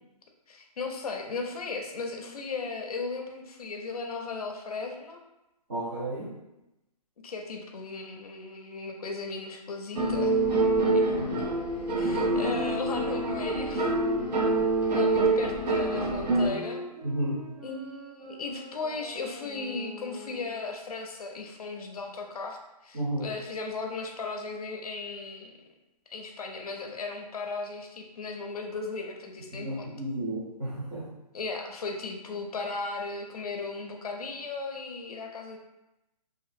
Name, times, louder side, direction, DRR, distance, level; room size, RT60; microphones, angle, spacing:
voice 1, 0.5-5.2 7.2-10.4 10.9-11.0 11.9-13.9 14.9-16.8 17.6-25.5 26.1-29.9 31.3-35.6, left 3 dB, 65° left, 3 dB, 0.5 m, -36 dB
voice 2, 5.7-6.3 11.3-11.4 17.0-17.4 22.9-23.3 29.5-31.0, right 1 dB, 30° right, -12 dB, 0.6 m, -32 dB
sound 1, 9.9-16.5, right 2 dB, 75° right, 0.6 m, -26 dB
sound 2, 10.6-15.3 15.7-20.7, left 1 dB, 15° left, 0.6 m, -43 dB
2.5 x 2.4 x 2.5 m, 0.95 s
hypercardioid pair, 175°, 21 cm